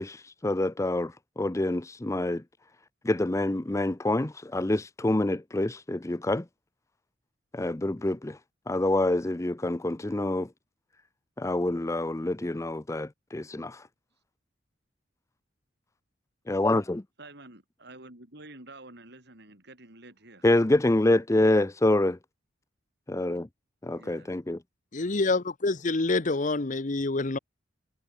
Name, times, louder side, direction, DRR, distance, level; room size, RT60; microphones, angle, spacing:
voice 1, 0.0-2.4 3.0-6.4 7.5-8.4 8.7-10.5 11.4-13.8 16.5-17.0 20.4-22.2 23.1-23.5 23.8-24.6, left 1 dB, 15° left, 0.6 m, -26 dB
voice 2, 17.2-20.5 23.9-24.4, right 2 dB, 60° right, 6.6 m, -49 dB
voice 3, 24.9-27.4, left 3 dB, 45° left, 0.9 m, -27 dB
head